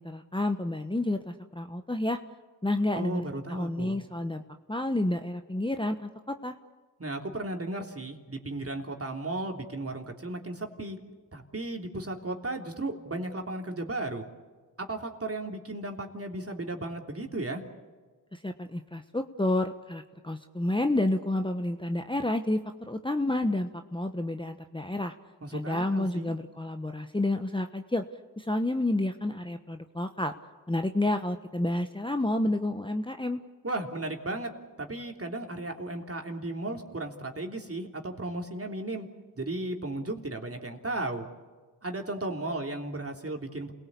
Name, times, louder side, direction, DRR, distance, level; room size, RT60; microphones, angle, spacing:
voice 1, 0.0-2.2 2.6-4.4 4.7-6.5 18.3-25.1 25.5-28.0 28.4-30.3 30.7-33.4, left 1 dB, 10° left, 6 dB, 1.2 m, -30 dB
voice 2, 2.9-4.0 7.0-11.0 11.3-14.2 14.8-17.6 25.4-26.3 33.6-34.5 34.8-39.1 39.3-41.3 41.8-43.7, right 2 dB, 35° right, 3 dB, 3.3 m, -35 dB
27.5 x 18.0 x 8.5 m, 1.4 s
cardioid pair, 45°, 41 cm